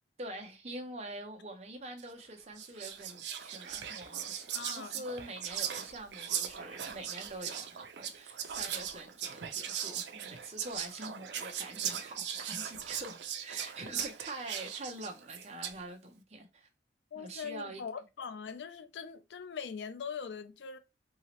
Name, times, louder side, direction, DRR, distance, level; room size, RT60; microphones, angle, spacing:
voice 1, 0.2-16.7 17.1-17.8, right 2 dB, 35° right, 0.7 m, -45 dB
Whispering, 2.0-2.2 2.6-15.8, right 9 dB, 80° right, 0.5 m, -39 dB
voice 2, 4.5-5.0 13.8-14.1 17.1-20.8, left 6 dB, 85° left, 0.4 m, -42 dB
2.9 x 2.8 x 2.9 m
head